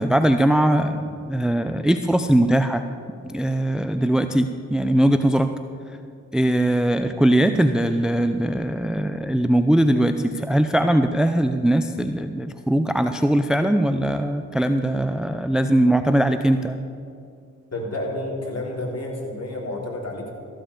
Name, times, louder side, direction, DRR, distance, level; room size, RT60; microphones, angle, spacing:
voice 1, 0.0-2.8 3.2-5.5 6.3-16.8, right 1 dB, ahead, 8 dB, 0.6 m, -20 dB
voice 2, 17.7-20.3, left 1 dB, 40° left, -1 dB, 3.6 m, -30 dB
14.0 x 7.7 x 6.8 m, 2.4 s
hypercardioid pair, 40°, 38 cm